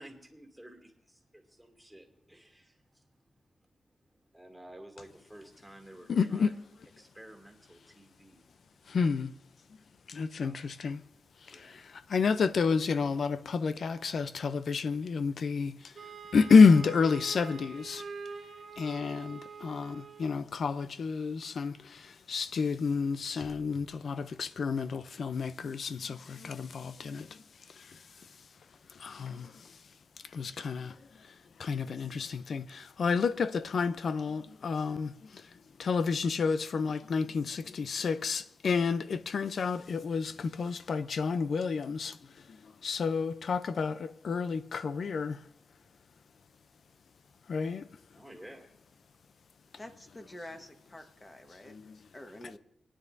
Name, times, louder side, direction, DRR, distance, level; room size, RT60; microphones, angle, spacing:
voice 1, 0.0-6.6 7.0-8.6 9.7-9.9 10.3-10.7 11.0-12.1 48.1-48.7, right 1 dB, ahead, 2.7 m, -53 dB
voice 2, 6.1-6.5 8.9-9.3 10.1-11.0 11.5-15.9 16.3-18.0 18.8-27.4 27.7-28.0 28.9-29.8 30.3-31.0 31.3-31.4 31.6-35.5 35.8-42.2 42.5-45.4 47.5-47.9 51.7-52.0, left 5 dB, 70° left, 0.5 m, -29 dB
Wind instrument woodwind instrument, 15.9-20.4, right 5 dB, 70° right, 1.4 m, -45 dB
voice 3, 49.8-51.7 52.1-52.6, left 1 dB, 20° left, 1.3 m, -47 dB
29.0 x 10.0 x 2.7 m
cardioid pair, 80°, 0 cm